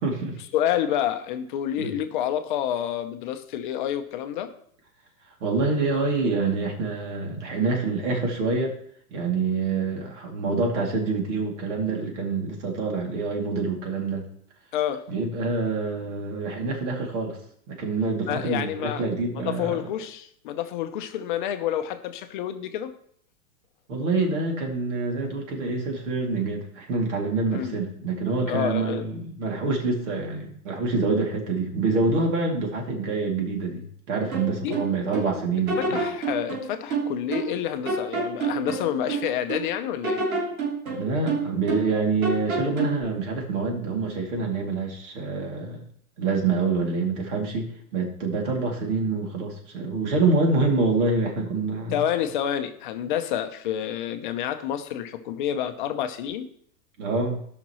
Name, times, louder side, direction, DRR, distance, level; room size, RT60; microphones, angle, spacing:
voice 1, 0.0-0.4 1.8-1.9 5.4-8.7 9.1-14.2 15.1-17.4 17.7-19.8 23.9-36.0 40.9-45.8 46.2-47.7 47.9-52.0 57.0-57.4, right 3 dB, 55° right, 1 dB, 2.7 m, -26 dB
voice 2, 0.5-4.5 14.7-15.1 18.3-19.1 19.3-22.9 27.5-27.8 28.5-29.1 34.6-34.8 35.8-40.2 51.9-56.5, left 10 dB, 35° left, 8 dB, 0.7 m, -28 dB
sound 1, 34.3-35.3 35.7-37.6 37.8-39.7 40.0-41.9 42.2-43.0, right 3 dB, 70° right, 3.2 m, -28 dB
17.0 x 6.0 x 3.1 m, 0.64 s
supercardioid pair, 160°, 43 cm